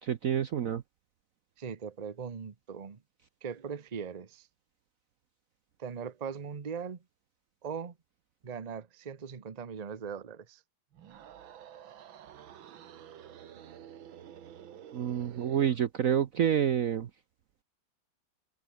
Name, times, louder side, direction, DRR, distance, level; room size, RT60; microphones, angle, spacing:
voice 1, 0.0-0.8 14.9-17.1, right 9 dB, 55° right, 1.0 m, -28 dB
voice 2, 1.6-3.0 3.4-4.5 5.8-7.0 7.6-8.0 8.4-10.6, right 6 dB, 30° right, 0.8 m, -40 dB
sound 1, 10.9-15.8, right 9 dB, 85° right, 2.1 m, -50 dB
omnidirectional pair, 2.1 m